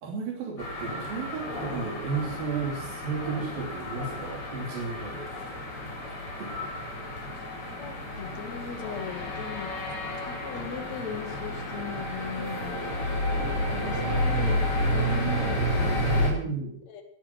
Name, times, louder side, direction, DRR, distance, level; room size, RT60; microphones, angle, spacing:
voice 1, 0.0-5.3 6.4-6.5 16.2-16.8, right 5 dB, 55° right, -2 dB, 4.6 m, -33 dB
sound 1, 0.6-16.3, equal, 30° left, 6.5 m, -30 dB
voice 2, 7.8-9.7 10.2-12.8 13.7-14.6 14.9-15.6 16.4-16.5 16.9-17.0, left 7 dB, 45° left, 5 dB, 2.9 m, -38 dB
19.5 x 11.0 x 6.2 m, 0.63 s
omnidirectional pair, 5.0 m